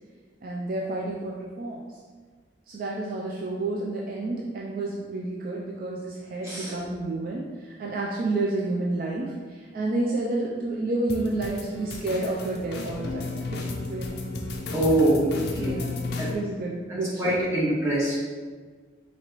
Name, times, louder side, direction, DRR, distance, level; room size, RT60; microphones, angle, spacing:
voice 1, 0.4-1.8 2.7-14.1 15.6-17.4, right 2 dB, 45° right, -3 dB, 0.3 m, -30 dB
sound 1, 11.1-16.3, left 3 dB, 55° left, 0.4 m, -33 dB
voice 2, 14.7-15.3 15.5-15.8 16.2-16.3 17.2-18.2, right 1 dB, 15° right, -10 dB, 1.3 m, -24 dB
4.4 x 2.9 x 2.9 m, 1.5 s
head